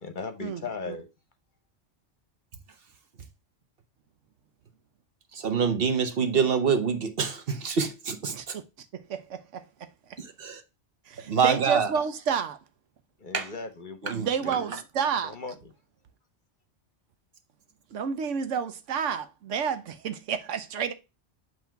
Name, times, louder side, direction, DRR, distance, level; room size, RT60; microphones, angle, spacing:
voice 1, 0.0-1.1 13.2-14.1 14.4-14.5 15.2-15.7, left 4 dB, 45° left, 0.9 m, -37 dB
voice 2, 5.3-8.5 10.2-10.6 11.3-11.9 13.3-13.5 14.0-14.3, right 6 dB, 55° right, 1.1 m, -26 dB
voice 3, 8.3-8.6 8.9-9.9 11.1-12.6 14.1-15.4 17.9-20.9, right 7 dB, 80° right, 1.1 m, -30 dB
8.1 x 3.1 x 4.5 m
omnidirectional pair, 1.2 m